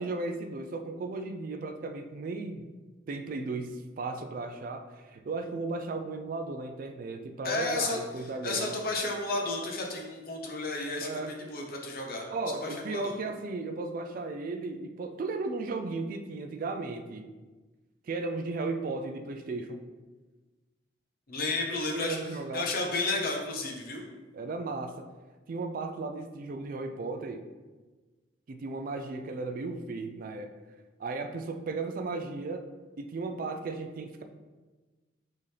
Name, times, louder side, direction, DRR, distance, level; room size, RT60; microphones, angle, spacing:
voice 1, 0.0-2.7 3.1-8.8 11.0-11.3 12.3-17.3 18.0-19.8 21.9-22.7 24.3-25.1 25.5-27.4 28.5-30.5 31.0-32.6 33.0-34.2, right 3 dB, 45° right, 6 dB, 0.3 m, -35 dB
voice 2, 7.4-8.0 8.4-12.2 12.6-13.1 21.3-22.2 22.5-24.0, left 2 dB, 50° left, 1 dB, 0.7 m, -32 dB
4.1 x 3.7 x 3.3 m, 1.3 s
head